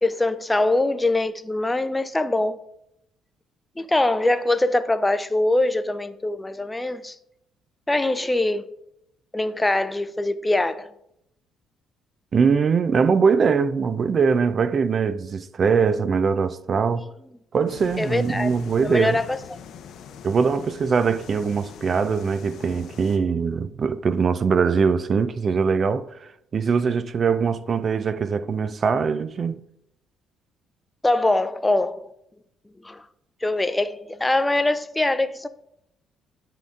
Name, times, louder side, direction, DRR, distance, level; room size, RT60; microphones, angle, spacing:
voice 1, 0.0-2.6 3.8-7.1 7.9-8.7 9.3-10.9 18.0-18.5 18.8-19.6 31.0-32.0 32.8-33.0 33.4-35.5, left 2 dB, 15° left, 0.4 m, -23 dB
voice 2, 12.3-17.1 17.5-19.2 20.2-29.5, right 5 dB, 45° right, 0.4 m, -22 dB
sound 1, 17.7-23.2, left 7 dB, 70° left, 0.6 m, -42 dB
9.8 x 3.7 x 3.7 m
cardioid pair, 85°, 0 cm